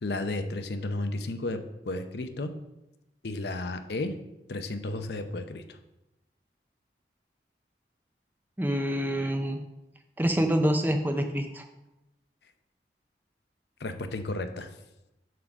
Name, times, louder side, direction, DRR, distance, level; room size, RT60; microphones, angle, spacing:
voice 1, 0.0-2.5 3.2-4.1 4.5-5.6 13.8-14.7, left 2 dB, 70° left, 8 dB, 0.7 m, -33 dB
voice 2, 8.6-9.6 10.2-11.7, equal, 10° right, 5 dB, 0.5 m, -26 dB
7.7 x 3.8 x 6.0 m, 0.93 s
head